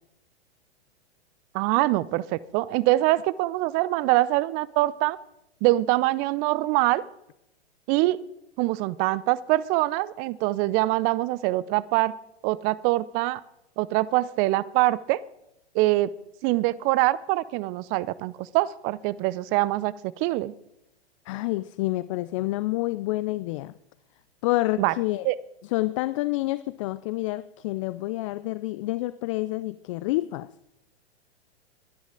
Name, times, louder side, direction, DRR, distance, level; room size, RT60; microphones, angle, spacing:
voice 1, 1.5-5.2 5.6-7.0 7.9-8.2 8.6-12.1 12.4-13.4 13.8-15.2 15.7-16.1 16.4-20.5 24.8-24.9 25.2-25.4, right 18 dB, 25° right, 20 dB, 0.5 m, -24 dB
voice 2, 21.3-23.7 24.4-25.3 25.7-30.5, left 18 dB, 30° left, 17 dB, 0.4 m, -28 dB
21.5 x 10.0 x 3.8 m, 0.83 s
figure-of-eight pair, 110°, 32 cm